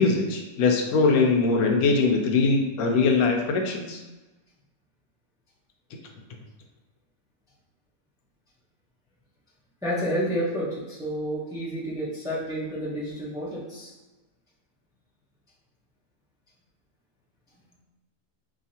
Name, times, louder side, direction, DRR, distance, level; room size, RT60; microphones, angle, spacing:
voice 1, 0.0-4.0, left 4 dB, 80° left, 2 dB, 1.1 m, -22 dB
voice 2, 9.8-13.9, equal, 5° right, -7 dB, 0.7 m, -30 dB
4.7 x 2.8 x 2.8 m, 1.2 s
omnidirectional pair, 1.6 m